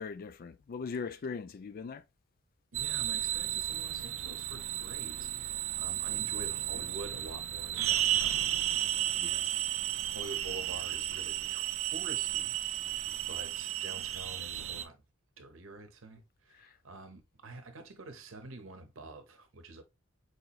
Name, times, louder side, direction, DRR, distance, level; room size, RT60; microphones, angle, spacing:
voice 1, 0.0-2.0 6.7-6.9 9.2-9.6 16.5-16.8, left 5 dB, 45° left, 0.4 m, -40 dB
voice 2, 2.7-8.4 10.0-12.5 12.8-15.0 15.4-19.8, right 2 dB, 75° right, 0.8 m, -47 dB
sound 1, 2.7-14.8, right 13 dB, 90° right, 0.4 m, -33 dB
4.8 x 2.9 x 2.3 m
head